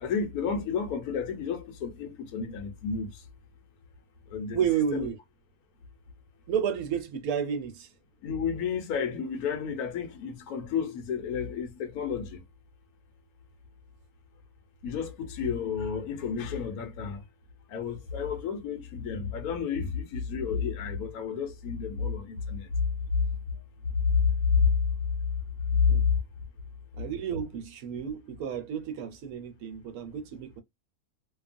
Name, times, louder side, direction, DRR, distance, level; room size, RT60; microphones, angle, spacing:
voice 1, 0.0-3.1 4.3-4.6 4.9-5.1 8.2-12.4 14.8-17.2 17.7-22.7, left 6 dB, 75° left, 1.2 m, -32 dB
voice 2, 4.5-5.2 6.5-7.9 25.9-26.1 27.0-30.6, right 8 dB, 70° right, 1.1 m, -31 dB
2.8 x 2.3 x 2.5 m
omnidirectional pair, 1.6 m